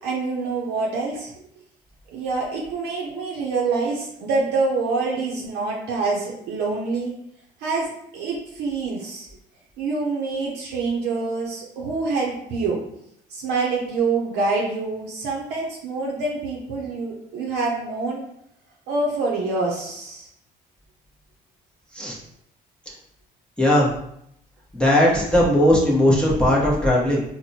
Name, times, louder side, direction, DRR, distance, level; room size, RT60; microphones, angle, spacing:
voice 1, 0.0-1.3 2.1-7.1 7.6-9.3 9.8-12.8 13.3-18.2 18.9-20.3, right 3 dB, 85° right, -3 dB, 0.6 m, -26 dB
voice 2, 23.6-23.9 24.7-27.2, left 1 dB, 5° left, -5 dB, 0.8 m, -18 dB
4.2 x 2.1 x 2.7 m, 0.75 s
cardioid pair, 110°, 17 cm